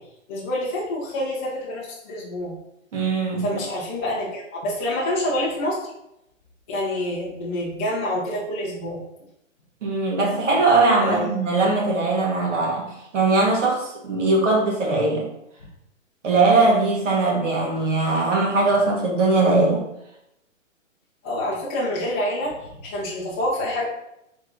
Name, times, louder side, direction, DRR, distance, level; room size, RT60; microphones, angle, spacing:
voice 1, 0.3-2.5 3.4-5.9 6.7-9.0 11.0-11.3 21.2-23.8, left 1 dB, 10° left, -7 dB, 0.5 m, -27 dB
voice 2, 2.9-3.6 9.8-15.3 16.2-19.8, right 3 dB, 70° right, -2 dB, 1.6 m, -20 dB
3.5 x 3.3 x 3.9 m, 0.81 s
hypercardioid pair, 165°, 39 cm